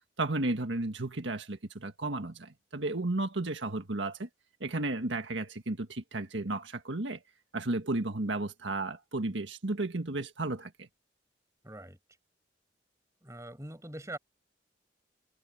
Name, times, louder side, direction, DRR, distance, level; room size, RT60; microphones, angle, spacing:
voice 1, 0.2-4.3 4.6-7.2 7.5-10.9, right 2 dB, 85° right, 1.7 m, -33 dB
voice 2, 11.6-12.0 13.2-14.2, right 1 dB, 15° right, 7.0 m, -43 dB
head